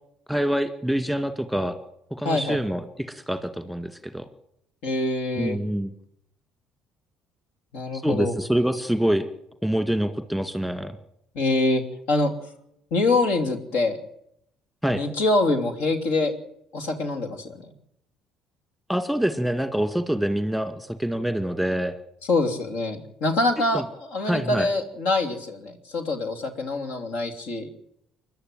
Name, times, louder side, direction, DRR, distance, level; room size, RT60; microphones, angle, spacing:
voice 1, 0.3-1.8 2.2-4.3 5.4-5.9 7.9-9.3 9.6-11.0 14.8-15.0 18.9-21.9 23.7-23.8 24.3-24.7, right 1 dB, ahead, 9 dB, 2.1 m, -25 dB
voice 2, 2.2-2.6 4.8-5.6 7.7-8.3 11.3-11.8 12.1-12.3 12.9-14.0 14.9-16.3 16.7-17.6 22.3-27.7, left 2 dB, 60° left, 4 dB, 3.0 m, -25 dB
30.0 x 12.0 x 7.8 m, 0.77 s
figure-of-eight pair, 50°, 3 cm